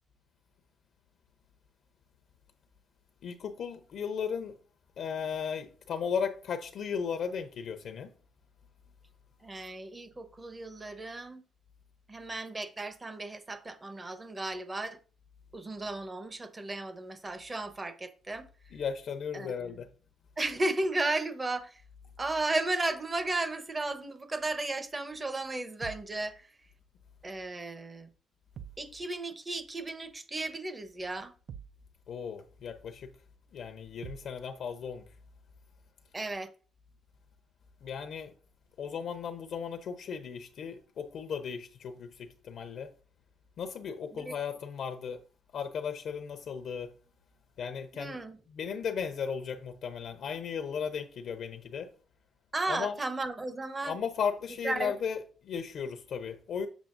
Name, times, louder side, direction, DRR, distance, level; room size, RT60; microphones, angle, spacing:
voice 1, 3.2-4.6 5.0-8.1 18.7-19.9 32.1-33.1 33.5-35.1 37.8-38.3 38.8-42.9 43.6-45.2 45.5-46.9 47.6-48.2 48.6-51.9 52.7-52.9 53.8-56.7, left 6 dB, 65° left, 0.8 m, -36 dB
voice 2, 9.4-11.4 12.1-15.0 15.5-18.5 19.3-19.8 20.4-21.8 22.2-26.5 27.2-28.1 28.8-31.3 36.1-36.5 44.1-44.4 47.9-48.4 52.5-54.0 54.6-54.9, right 2 dB, 25° right, 1.0 m, -34 dB
sound 1, 25.8-26.2 28.6-28.9 31.5-31.9 34.0-34.4, right 8 dB, 60° right, 0.6 m, -45 dB
7.2 x 6.8 x 2.6 m
cardioid pair, 90°, 0 cm